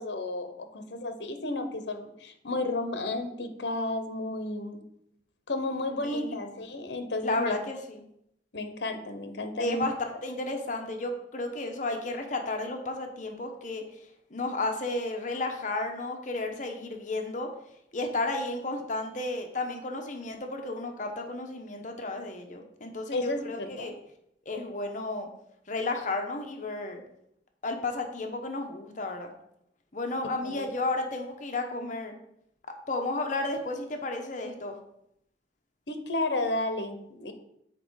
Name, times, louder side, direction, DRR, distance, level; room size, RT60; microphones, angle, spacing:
voice 1, 0.0-4.8 5.5-7.6 8.5-9.9 23.1-23.9 30.4-30.6 35.9-37.3, left 2 dB, 70° left, 8 dB, 0.9 m, -32 dB
voice 2, 6.0-6.4 7.2-8.0 9.6-9.9 10.2-13.8 14.3-17.5 17.9-23.9 24.5-25.3 25.7-27.0 27.6-29.3 29.9-32.1 32.9-34.7, left 2 dB, 45° left, 4 dB, 0.9 m, -32 dB
7.8 x 4.4 x 4.7 m, 0.76 s
head